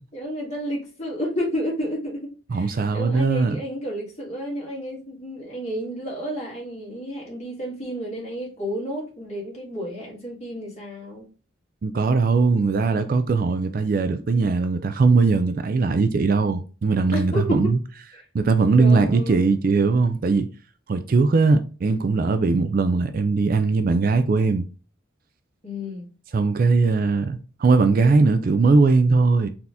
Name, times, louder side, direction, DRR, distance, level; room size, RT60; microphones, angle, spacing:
voice 1, 0.1-11.3 17.1-17.7 18.1-18.2 18.8-19.5 25.6-26.1, equal, 30° left, 1.6 m, -31 dB
voice 2, 2.5-3.6 11.8-17.8 18.3-20.5 20.9-24.7 26.3-29.5, right 4 dB, 45° right, 0.3 m, -20 dB
4.1 x 2.8 x 3.4 m
head